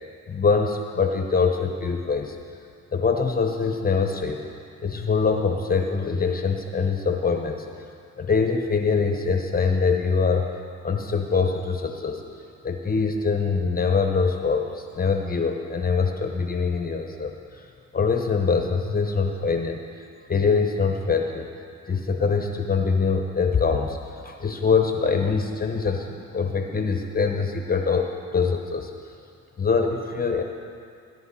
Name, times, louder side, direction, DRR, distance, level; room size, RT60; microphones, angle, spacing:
voice 1, 0.3-2.4 2.9-4.4 4.8-7.7 8.2-10.5 10.8-12.2 12.6-17.6 17.9-21.5 21.9-24.0 24.2-28.9 29.6-30.4, left 5 dB, 30° left, 4 dB, 1.0 m, -24 dB
19.0 x 11.0 x 4.2 m, 2.4 s
cardioid pair, 90°, 30 cm